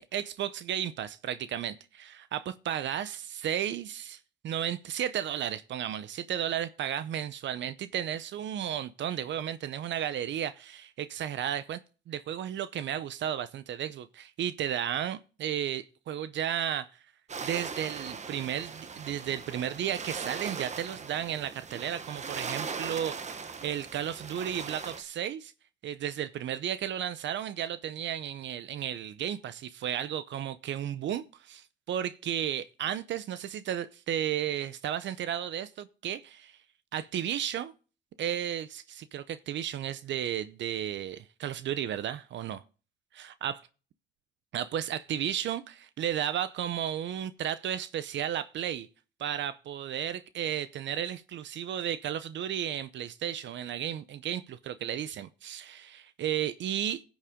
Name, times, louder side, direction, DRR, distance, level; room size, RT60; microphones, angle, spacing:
voice 1, 0.1-11.8 12.1-16.9 17.4-25.5 25.8-36.6 36.9-37.7 38.2-42.6 43.1-43.6 44.5-48.9 49.2-57.0, right 10 dB, 70° right, 0.7 m, -33 dB
sound 1, 17.3-25.0, right 5 dB, 35° right, 1.1 m, -39 dB
16.0 x 7.2 x 3.7 m
cardioid pair, 90°, 20 cm